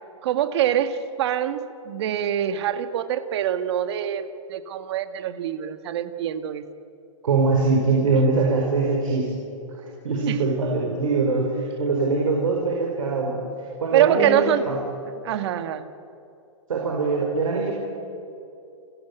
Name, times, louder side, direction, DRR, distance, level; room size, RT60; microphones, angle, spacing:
voice 1, 0.2-6.6 10.3-10.4 13.9-14.6 15.2-15.9, right 10 dB, 55° right, 11 dB, 1.6 m, -24 dB
voice 2, 7.2-9.3 9.7-14.8 16.7-17.7, right 3 dB, 80° right, 0 dB, 4.7 m, -23 dB
28.5 x 16.0 x 8.2 m, 2.7 s
hypercardioid pair, 145°, 17 cm